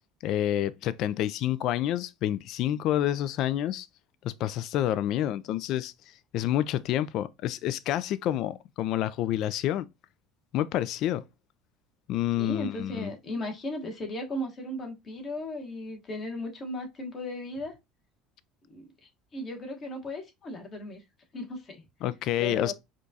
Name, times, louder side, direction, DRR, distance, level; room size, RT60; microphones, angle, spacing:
voice 1, 0.2-3.9 4.2-5.9 6.3-9.9 10.5-11.2 12.1-13.1 22.0-22.7, left 12 dB, 60° left, 0.3 m, -28 dB
voice 2, 12.4-17.7 18.7-21.0 21.3-21.8 22.4-22.7, left 1 dB, 35° left, 1.2 m, -36 dB
5.0 x 2.4 x 2.7 m
supercardioid pair, 105°, 0 cm